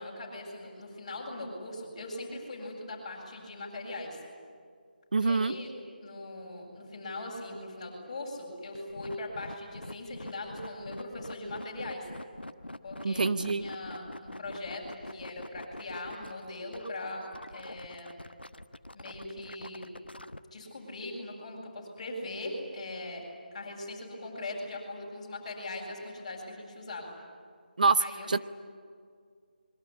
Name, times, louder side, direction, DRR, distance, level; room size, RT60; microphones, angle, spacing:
voice 1, 0.0-4.2 5.2-5.7 6.0-12.1 12.8-17.2 17.5-18.1 18.9-19.9 20.5-23.2 23.5-27.1 28.0-28.4, left 2 dB, 35° left, -2 dB, 7.9 m, -40 dB
voice 2, 5.1-5.5 13.0-13.6 27.8-28.4, right 4 dB, 55° right, 13 dB, 1.0 m, -26 dB
sound 1, 8.7-20.4, left 1 dB, 90° left, 1.1 m, -44 dB
25.5 x 23.0 x 9.9 m, 2.1 s
figure-of-eight pair, 155°, 5 cm